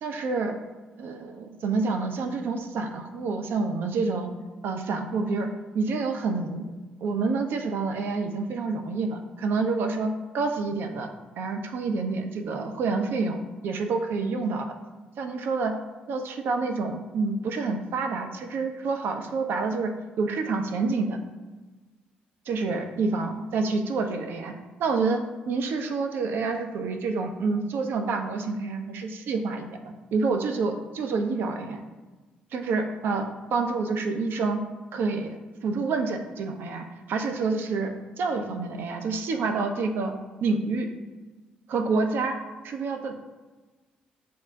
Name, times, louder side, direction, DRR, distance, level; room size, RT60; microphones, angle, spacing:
voice 1, 0.0-0.6 1.0-4.3 4.6-5.5 5.7-6.7 7.0-11.1 11.4-14.7 15.2-15.7 16.1-19.9 20.2-21.2 22.5-24.5 24.8-31.8 32.5-34.6 34.9-40.1 40.4-40.9 41.7-42.4 42.6-43.2, right 4 dB, 60° right, 5 dB, 0.4 m, -28 dB
7.0 x 2.5 x 2.2 m, 1.3 s
figure-of-eight pair, 45°, 4 cm